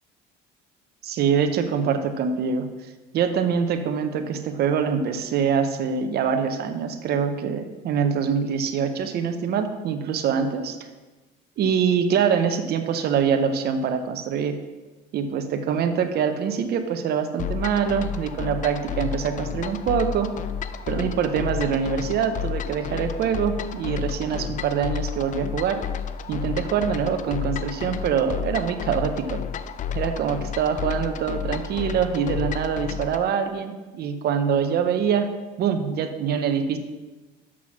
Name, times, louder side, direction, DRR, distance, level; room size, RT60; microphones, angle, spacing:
voice 1, 1.0-2.7 3.1-10.8 11.6-14.6 15.1-20.3 20.9-25.8 26.3-29.4 29.9-35.3 35.6-36.8, right 7 dB, 55° right, 7 dB, 0.8 m, -24 dB
sound 1, 17.4-33.3, left 8 dB, 40° left, 0.5 m, -31 dB
6.1 x 6.1 x 6.0 m, 1.2 s
cardioid pair, 105°, 19 cm